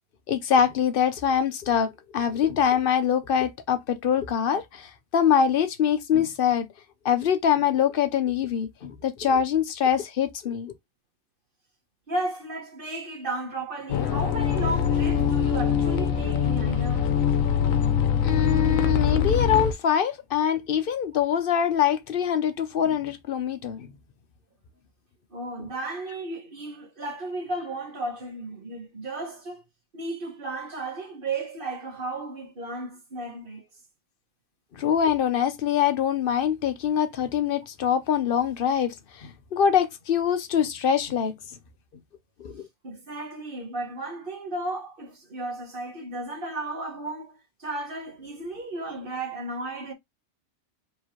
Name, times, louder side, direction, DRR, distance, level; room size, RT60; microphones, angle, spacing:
voice 1, 0.3-6.7 7.0-10.7 18.2-23.9 34.7-41.3 42.4-42.6, left 8 dB, 55° left, 0.7 m, -24 dB
voice 2, 12.1-17.1 25.3-29.6 29.9-33.6 42.8-49.9, right 2 dB, 40° right, 1.7 m, -34 dB
sound 1, 13.9-19.7, left 8 dB, 80° left, 1.1 m, -23 dB
4.6 x 3.1 x 2.9 m
omnidirectional pair, 1.4 m